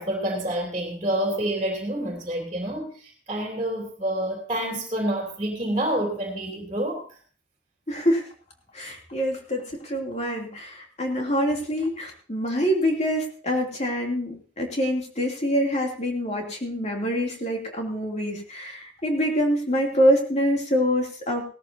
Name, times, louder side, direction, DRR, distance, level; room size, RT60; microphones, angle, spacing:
voice 1, 0.0-7.2, right 1 dB, 30° right, 0 dB, 3.1 m, -28 dB
voice 2, 7.9-8.3 8.7-21.4, equal, 35° left, 1 dB, 2.8 m, -25 dB
17.5 x 13.5 x 2.8 m, 0.41 s
head